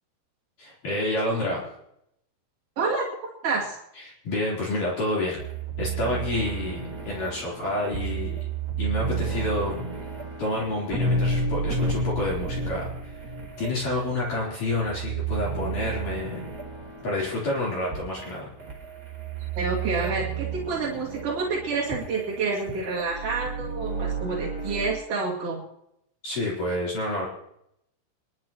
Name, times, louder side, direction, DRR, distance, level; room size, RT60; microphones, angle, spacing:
voice 1, 0.6-1.6 4.2-5.4 5.8-8.4 8.8-9.8 10.4-12.9 13.6-16.5 17.0-18.5 26.2-27.3, left 2 dB, 45° left, -5 dB, 4.8 m, -28 dB
voice 2, 3.4-3.8 19.6-25.6, right 4 dB, 45° right, -4 dB, 2.4 m, -28 dB
sound 1, 5.4-25.0, right 4 dB, 25° right, 2.1 m, -32 dB
25.0 x 12.0 x 3.0 m, 0.77 s
omnidirectional pair, 5.8 m